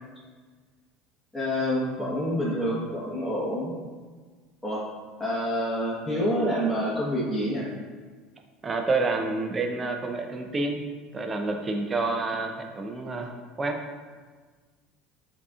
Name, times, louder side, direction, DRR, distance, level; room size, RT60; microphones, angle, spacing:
voice 1, 1.3-3.7 4.6-4.8 5.2-7.7, equal, 5° left, -8 dB, 1.2 m, -27 dB
voice 2, 8.6-10.8 11.1-13.8, right 3 dB, 30° right, 4 dB, 0.6 m, -28 dB
7.2 x 2.8 x 2.4 m, 1.5 s
hypercardioid pair, 80°, 0 cm